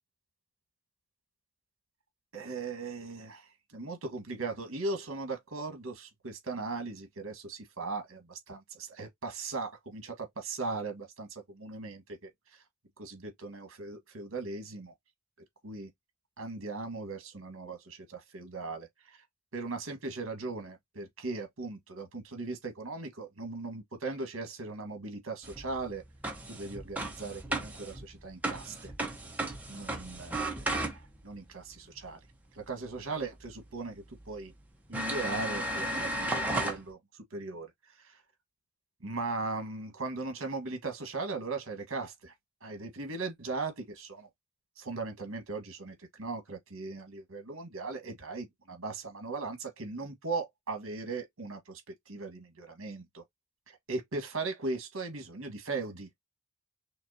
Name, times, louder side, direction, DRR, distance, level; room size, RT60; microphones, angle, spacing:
voice 1, 2.3-12.6 13.0-14.9 15.6-15.9 16.4-19.2 19.5-26.0 26.5-28.9 29.7-30.5 30.9-32.2 32.5-34.5 34.9-37.0 37.3-38.2 39.0-42.3 42.6-44.3 44.8-51.8 52.1-53.2 53.7-56.1, right 3 dB, 65° right, 1.7 m, -38 dB
sound 1, 25.4-31.3 33.5-33.6 34.2-34.3 34.9-36.8, right 1 dB, 5° right, 1.0 m, -35 dB
5.8 x 2.7 x 2.8 m
head